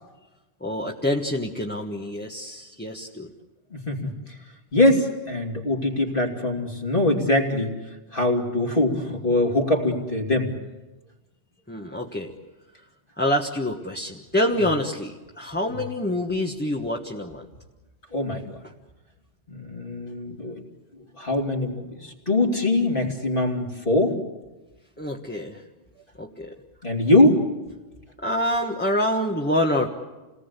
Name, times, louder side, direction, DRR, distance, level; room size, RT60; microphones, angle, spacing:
voice 1, 0.6-3.3 11.7-12.3 13.2-17.4 25.0-25.6 26.2-26.5 28.2-29.9, left 1 dB, 10° left, 1 dB, 1.3 m, -26 dB
voice 2, 3.7-4.1 4.7-7.7 8.1-10.5 15.7-15.8 18.1-18.4 19.5-20.6 21.2-24.2 26.8-27.4, left 1 dB, 50° left, 2 dB, 3.1 m, -22 dB
28.5 x 19.0 x 8.2 m, 1.1 s
omnidirectional pair, 1.2 m